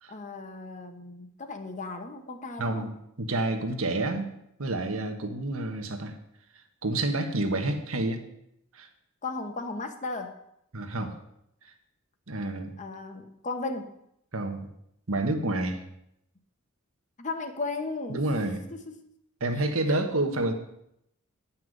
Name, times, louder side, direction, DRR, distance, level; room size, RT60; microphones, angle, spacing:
voice 1, 0.1-2.9 9.2-10.3 12.8-13.9 17.2-18.2 18.7-19.0 19.6-20.0, left 3 dB, 35° left, 6 dB, 1.0 m, -36 dB
voice 2, 2.6-2.9 3.2-4.3 4.6-6.1 6.8-8.2 8.7-8.9 10.7-11.1 12.3-12.7 14.3-14.7 15.1-15.8 18.1-18.6 19.4-20.5, right 2 dB, 70° right, 5 dB, 1.3 m, -29 dB
9.6 x 5.8 x 7.9 m, 0.77 s
head